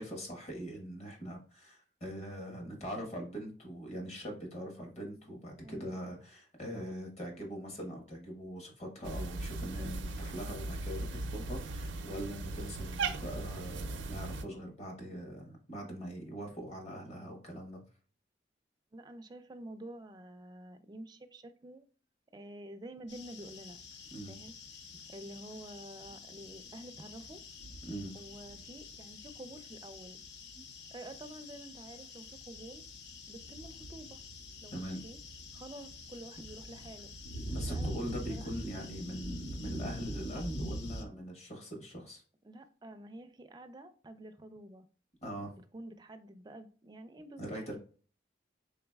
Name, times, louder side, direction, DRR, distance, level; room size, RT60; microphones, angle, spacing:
voice 1, 0.0-17.8 24.1-24.3 27.9-28.1 34.7-35.0 37.5-42.2 45.2-45.5 47.4-47.8, equal, 35° left, 1 dB, 1.2 m, -42 dB
voice 2, 5.6-6.2 18.9-21.9 22.3-23.8 24.3-24.5 25.1-27.4 28.1-30.2 30.9-32.8 33.3-34.2 34.6-35.2 35.5-37.1 37.7-38.5 42.4-44.9 45.5-47.8, right 1 dB, 20° right, 8 dB, 0.4 m, -49 dB
Cat, 9.0-14.4, right 3 dB, 90° right, 0.5 m, -38 dB
sound 1, 23.1-41.0, left 1 dB, 70° left, 0.6 m, -44 dB
3.9 x 3.8 x 2.3 m, 0.40 s
head